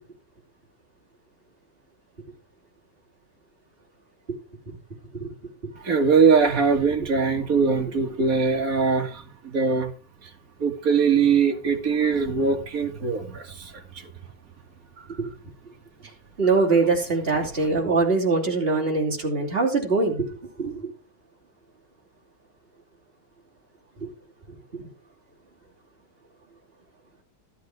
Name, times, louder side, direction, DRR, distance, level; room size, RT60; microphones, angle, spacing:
voice 1, 5.8-9.9 10.2-10.3 10.6-14.1 15.1-15.2, right 5 dB, 45° right, 2.1 m, -22 dB
voice 2, 16.4-20.9 24.0-24.1 24.7-24.9, right 3 dB, 25° right, 3.2 m, -23 dB
13.5 x 8.1 x 4.7 m
omnidirectional pair, 2.2 m